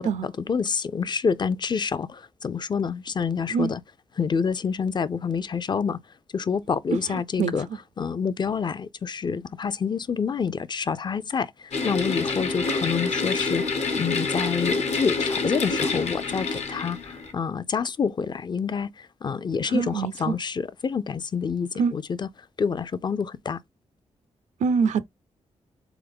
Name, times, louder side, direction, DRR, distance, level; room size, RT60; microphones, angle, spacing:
voice 1, 0.0-3.8 4.2-6.0 6.3-7.7 8.0-13.6 14.0-22.3 22.6-23.6, left 6 dB, 40° left, 0.4 m, -27 dB
voice 2, 7.1-7.5 19.6-20.3 21.8-21.9 24.6-25.0, right 5 dB, 80° right, 0.5 m, -25 dB
sound 1, 11.7-17.3, left 4 dB, 65° left, 0.9 m, -27 dB
3.8 x 3.5 x 3.4 m
cardioid pair, 95°, 12 cm